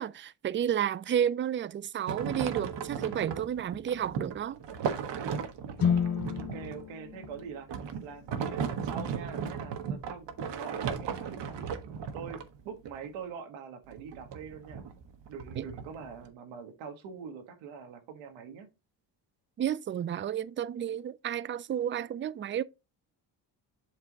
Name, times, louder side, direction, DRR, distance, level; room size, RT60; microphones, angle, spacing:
voice 1, 0.0-4.6 15.6-15.7 19.6-22.6, right 9 dB, 25° right, 0.4 m, -31 dB
sound 1, 2.1-13.1 13.9-16.3, right 6 dB, 65° right, 1.3 m, -36 dB
sound 2, 5.8-9.8, left 7 dB, 50° left, 0.9 m, -33 dB
voice 2, 5.9-7.7 8.0-10.3 10.5-11.8 12.1-14.8 15.3-18.7, right 6 dB, 90° right, 1.6 m, -44 dB
7.9 x 3.4 x 4.0 m
cardioid pair, 80°, 46 cm